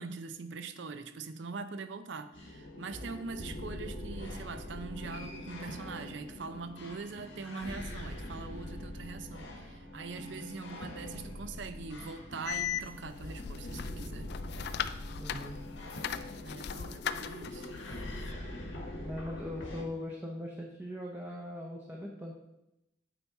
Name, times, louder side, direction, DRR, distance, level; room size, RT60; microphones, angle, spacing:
voice 1, 0.0-14.3 16.4-17.7, right 4 dB, 70° right, 10 dB, 0.6 m, -42 dB
sound 1, 2.3-19.8, left 1 dB, 75° left, 1.5 m, -43 dB
sound 2, 12.5-18.3, left 8 dB, 55° left, 0.3 m, -39 dB
voice 2, 15.2-15.6 19.0-22.3, left 1 dB, 10° right, -1 dB, 0.7 m, -40 dB
9.0 x 4.5 x 4.2 m, 0.88 s
head